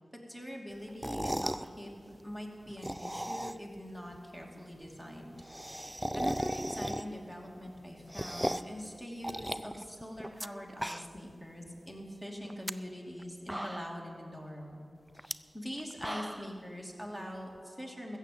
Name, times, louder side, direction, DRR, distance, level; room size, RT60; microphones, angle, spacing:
voice 1, 0.3-14.8 15.1-18.2, equal, 15° left, 0 dB, 2.8 m, -43 dB
sound 1, 0.9-1.7 2.7-3.8 4.1-4.2 4.4-4.5 4.7-4.8 5.1-7.3 7.7-8.8 9.2-10.5 10.7-11.3 11.7-11.8 12.4-12.7 13.2-13.3 13.5-14.1 15.2-15.3 15.8-16.6, equal, 10° right, 0.4 m, -36 dB
14.5 x 7.4 x 8.6 m, 2.7 s
cardioid pair, 40°, 0 cm